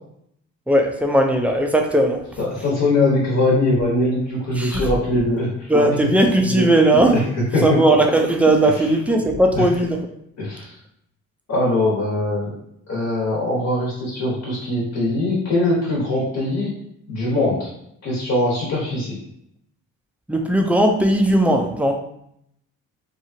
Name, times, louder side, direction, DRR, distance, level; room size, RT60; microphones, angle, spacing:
voice 1, 0.7-2.2 4.5-4.8 5.7-7.1 7.6-10.0 20.3-21.9, right 1 dB, 5° right, 2 dB, 0.4 m, -17 dB
voice 2, 2.4-5.7 6.4-6.7 7.1-7.2 7.5-7.8 8.6-8.9 9.5-9.8 10.4-10.7 11.5-12.5 12.9-16.7 17.1-17.7 18.0-19.1, left 2 dB, 60° left, -6 dB, 1.3 m, -21 dB
2.9 x 2.4 x 2.7 m, 0.74 s
cardioid pair, 90°, 30 cm